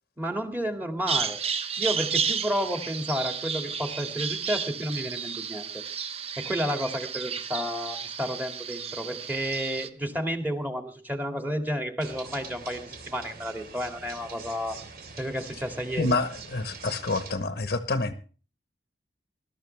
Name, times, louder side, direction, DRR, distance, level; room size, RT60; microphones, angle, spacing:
voice 1, 0.2-1.4 1.8-5.8 6.4-14.8 15.2-16.2, equal, 10° right, 4 dB, 2.2 m, -31 dB
Bird vocalization bird call bird song, 1.1-9.9, right 6 dB, 35° right, 0.9 m, -32 dB
sound 1, 12.0-17.4, right 4 dB, 60° right, 3.0 m, -44 dB
voice 2, 15.9-18.1, left 3 dB, 60° left, 9 dB, 1.0 m, -28 dB
20.5 x 13.0 x 3.4 m, 0.38 s
head